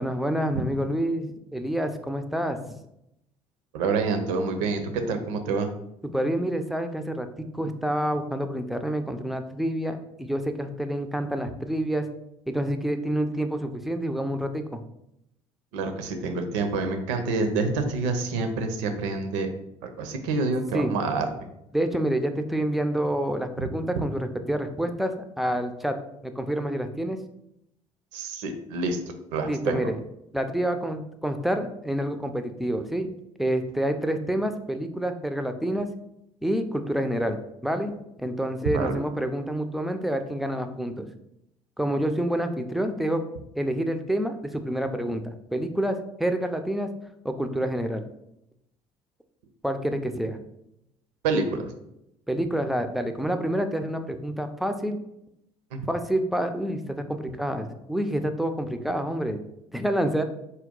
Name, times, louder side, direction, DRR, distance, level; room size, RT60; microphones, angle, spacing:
voice 1, 0.0-2.6 6.0-12.1 12.5-14.8 20.7-20.9 21.7-25.9 26.2-27.2 29.5-30.0 30.3-33.1 33.4-35.9 36.4-37.9 38.2-41.1 41.8-43.2 43.6-46.9 47.2-48.1 49.6-50.4 52.3-55.0 55.9-59.4 59.7-60.2, right 1 dB, ahead, 7 dB, 0.3 m, -28 dB
voice 2, 3.7-5.7 15.7-19.5 19.8-21.4 23.6-23.7 23.9-24.0 28.1-29.0 29.3-29.9 38.7-39.0 51.2-51.7 55.7-55.8, right 3 dB, 65° right, 6 dB, 0.5 m, -27 dB
3.8 x 2.3 x 3.6 m, 0.82 s
figure-of-eight pair, 55°, 17 cm